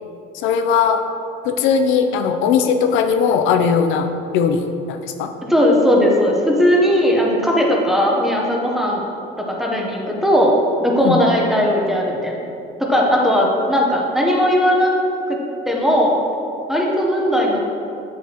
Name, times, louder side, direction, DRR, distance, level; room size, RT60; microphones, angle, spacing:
voice 1, 0.3-1.0 1.4-4.1 4.3-5.3 11.0-11.2, left 6 dB, 70° left, 7 dB, 0.5 m, -18 dB
voice 2, 5.5-9.0 9.4-10.5 10.8-12.4 12.9-15.0 15.3-15.4 15.7-16.1 16.7-17.6, equal, ahead, -2 dB, 0.8 m, -17 dB
8.0 x 7.1 x 2.9 m, 2.7 s
cardioid pair, 160°, 21 cm